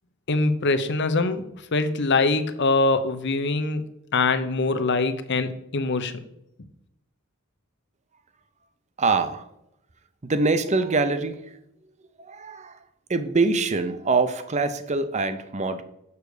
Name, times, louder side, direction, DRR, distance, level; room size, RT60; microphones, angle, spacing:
voice 1, 0.3-1.4 1.7-3.8 4.1-6.1, left 3 dB, 55° left, 10 dB, 0.8 m, -23 dB
voice 2, 9.0-9.5 10.2-11.4 12.2-12.8 13.1-15.8, right 3 dB, 30° right, 11 dB, 0.6 m, -24 dB
6.9 x 6.5 x 4.9 m, 0.81 s
head